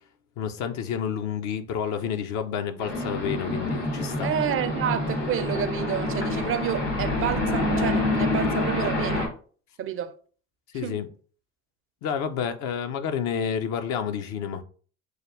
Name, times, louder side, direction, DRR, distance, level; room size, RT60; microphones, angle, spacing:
voice 1, 0.4-4.3 10.7-11.1 12.0-14.6, left 8 dB, 65° left, 0.7 m, -29 dB
sound 1, 2.8-9.3, left 2 dB, 85° left, 1.8 m, -27 dB
voice 2, 4.2-9.3 9.8-10.1 10.8-11.0, right 10 dB, 45° right, 0.5 m, -29 dB
6.4 x 2.3 x 3.3 m
hypercardioid pair, 60°, 31 cm